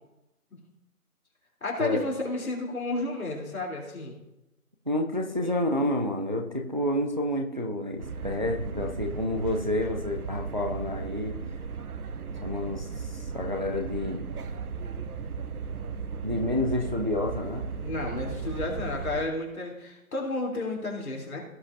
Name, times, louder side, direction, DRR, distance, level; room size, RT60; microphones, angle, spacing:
voice 1, 1.6-4.2 5.4-5.6 17.8-21.4, left 2 dB, 70° left, -2 dB, 3.5 m, -32 dB
voice 2, 4.9-11.4 12.4-14.2 16.2-17.7, left 1 dB, 35° right, 2 dB, 0.6 m, -29 dB
sound 1, 8.0-19.2, right 5 dB, 85° right, 0.9 m, -36 dB
17.0 x 5.7 x 2.7 m, 0.91 s
hypercardioid pair, 180°, 44 cm